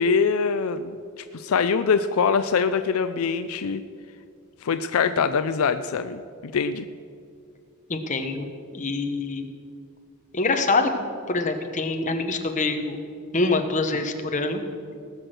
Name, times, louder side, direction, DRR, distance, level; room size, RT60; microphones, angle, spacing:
voice 1, 0.0-3.8 4.6-6.9, left 5 dB, 75° left, 11 dB, 0.4 m, -24 dB
voice 2, 7.9-8.5 8.7-9.5 10.3-10.9 11.3-13.0 13.3-14.6, left 3 dB, 35° left, 6 dB, 1.0 m, -25 dB
18.5 x 6.3 x 6.4 m, 2.3 s
head